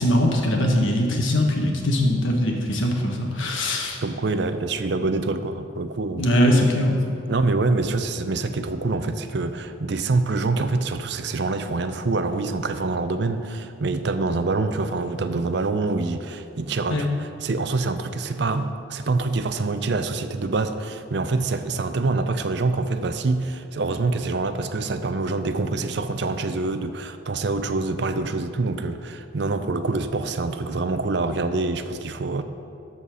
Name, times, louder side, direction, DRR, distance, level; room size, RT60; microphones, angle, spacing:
voice 1, 0.0-4.0 6.2-7.0 16.9-17.0, left 1 dB, 75° left, 1 dB, 1.3 m, -21 dB
voice 2, 4.0-6.3 7.3-32.4, right 3 dB, 55° right, 9 dB, 0.5 m, -25 dB
12.5 x 4.2 x 6.3 m, 2.7 s
head